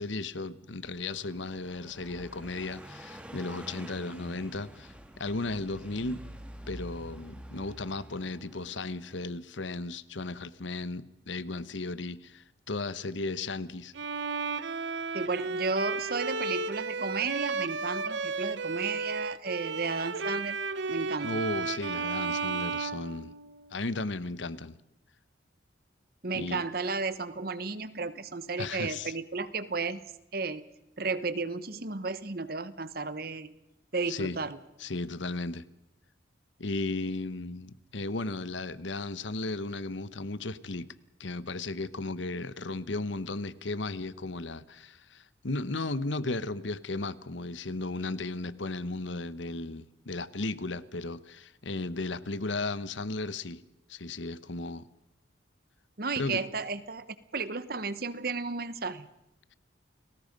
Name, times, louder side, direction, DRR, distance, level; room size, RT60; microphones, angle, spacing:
voice 1, 0.0-6.2 6.7-13.9 21.2-23.3 23.7-24.8 26.3-26.6 28.6-29.1 34.1-34.4 34.8-35.6 36.6-40.9 41.2-53.6 53.9-54.8 56.2-56.4, left 2 dB, 75° left, 1.0 m, -35 dB
Car passing by, 0.8-9.3, equal, 5° right, 1.9 m, -47 dB
Bowed string instrument, 14.0-23.8, right 4 dB, 70° right, 0.8 m, -33 dB
voice 2, 15.1-20.6 20.9-21.4 26.2-30.0 30.3-30.6 31.0-33.5 33.9-34.6 56.0-57.1 57.3-59.1, right 4 dB, 50° right, 1.2 m, -33 dB
29.5 x 20.0 x 5.3 m
head